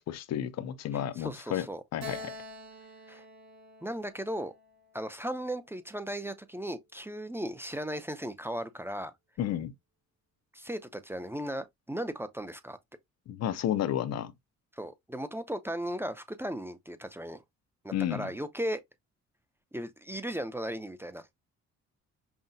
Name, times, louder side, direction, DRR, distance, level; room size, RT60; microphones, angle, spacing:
voice 1, 0.0-1.7 1.9-2.4 9.4-9.7 13.3-14.3 17.9-18.3, left 11 dB, 60° left, 0.5 m, -32 dB
voice 2, 1.2-1.8 3.1-3.2 3.8-4.5 4.9-9.1 10.5-12.8 14.7-17.4 17.8-18.8 19.7-21.3, equal, 10° right, 0.5 m, -36 dB
Keyboard (musical), 2.0-5.5, left 1 dB, 80° right, 2.1 m, -46 dB
5.6 x 2.1 x 2.6 m
cardioid pair, 90°, 30 cm